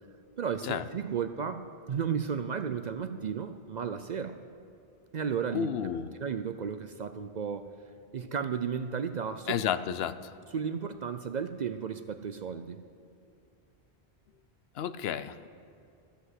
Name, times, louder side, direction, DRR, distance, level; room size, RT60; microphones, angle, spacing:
voice 1, 0.4-4.4 5.1-5.7 6.2-7.7 8.1-9.6 10.5-12.8, right 7 dB, 55° right, 9 dB, 0.5 m, -33 dB
voice 2, 5.5-6.1 9.5-10.1 14.8-15.5, left 9 dB, 70° left, 13 dB, 0.8 m, -31 dB
14.0 x 7.9 x 8.0 m, 2.5 s
omnidirectional pair, 1.1 m